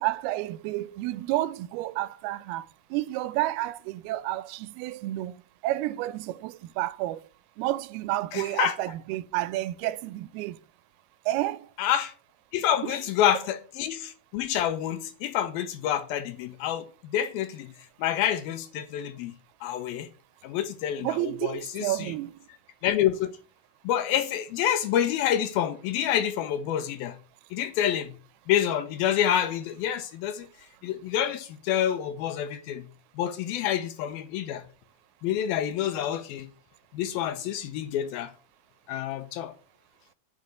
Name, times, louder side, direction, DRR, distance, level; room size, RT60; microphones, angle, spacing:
voice 1, 0.0-2.6 2.9-5.3 5.6-7.2 7.6-10.6 11.3-11.6 12.8-13.0 21.0-22.3, right 16 dB, 85° right, 2.6 m, -30 dB
voice 2, 8.3-8.7 11.8-12.1 12.5-16.8 17.1-17.7 18.0-19.3 19.6-20.1 20.4-22.1 22.8-23.3 23.9-27.2 27.5-28.1 28.5-30.5 30.8-32.8 33.2-34.6 35.2-36.5 36.9-38.3 38.9-39.5, left 10 dB, 80° left, 2.5 m, -27 dB
10.0 x 5.3 x 8.0 m
omnidirectional pair, 4.4 m